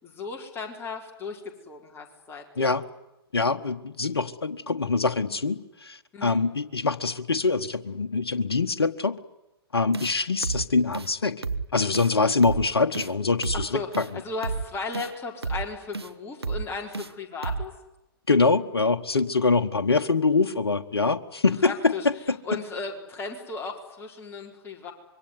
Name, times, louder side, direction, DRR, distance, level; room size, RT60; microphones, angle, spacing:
voice 1, 0.0-2.7 6.1-6.4 13.5-17.7 21.6-22.1 22.4-24.9, left 4 dB, 15° left, 4.6 m, -36 dB
voice 2, 2.6-2.9 3.3-9.2 9.7-11.4 11.7-14.2 18.3-22.4, left 4 dB, 70° left, 1.5 m, -24 dB
sound 1, 9.9-10.1 10.4-10.7 10.9-11.1 11.4-11.7 11.9-12.1 12.4-12.7 12.9-13.1 13.4-13.7 13.9-14.1 14.4-14.7 14.9-15.1 15.4-15.7 15.9-16.1 16.4-16.7 16.9-17.1 17.4-17.7, right 4 dB, 80° right, 1.6 m, -30 dB
26.0 x 23.5 x 9.7 m
figure-of-eight pair, 115°, 13 cm